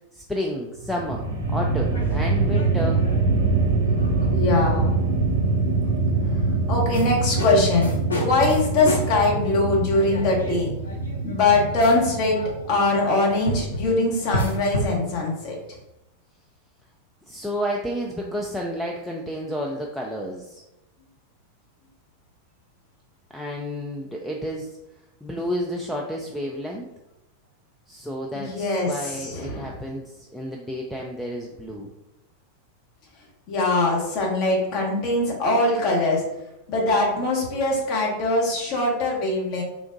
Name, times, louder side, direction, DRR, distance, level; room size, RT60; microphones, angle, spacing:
voice 1, 0.1-3.0 17.3-20.6 23.3-24.8 25.2-26.9 27.9-31.9, equal, ahead, -1 dB, 0.3 m, -31 dB
sound 1, 0.8-13.1, right 3 dB, 70° right, 0.6 m, -24 dB
sound 2, 1.9-4.7 5.2-5.4 6.9-15.7, left 1 dB, 75° left, 0.6 m, -33 dB
voice 2, 4.2-5.0 6.7-10.7 11.2-15.6 28.3-29.7 33.5-36.2 36.7-39.6, left 2 dB, 40° left, -1 dB, 1.0 m, -22 dB
3.3 x 2.8 x 2.6 m, 0.93 s
figure-of-eight pair, 90°, 0 cm